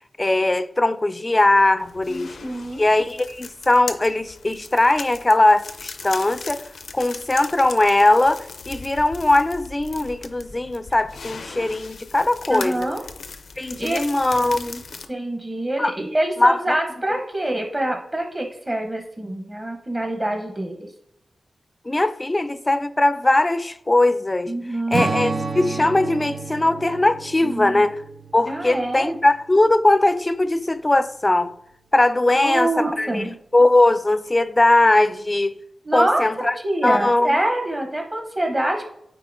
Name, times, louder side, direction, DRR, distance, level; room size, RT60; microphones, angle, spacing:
voice 1, 0.2-2.4 2.8-12.9 13.6-14.8 15.8-15.9 16.4-16.6 21.9-24.5 24.9-28.0 28.3-31.5 31.9-35.5 35.9-36.5 36.8-37.4, left 2 dB, 20° left, 0.3 m, -20 dB
sound 1, 1.8-15.1, left 4 dB, 85° left, 0.5 m, -38 dB
voice 2, 2.1-2.9 12.5-13.0 13.5-14.0 15.1-20.9 24.5-25.1 27.4-27.8 28.5-29.1 32.3-33.3 35.8-38.9, right 1 dB, 25° right, 0.9 m, -25 dB
Strum, 24.9-29.6, right 3 dB, 60° right, 0.7 m, -30 dB
9.0 x 4.1 x 2.6 m
wide cardioid pair, 95°, 0 cm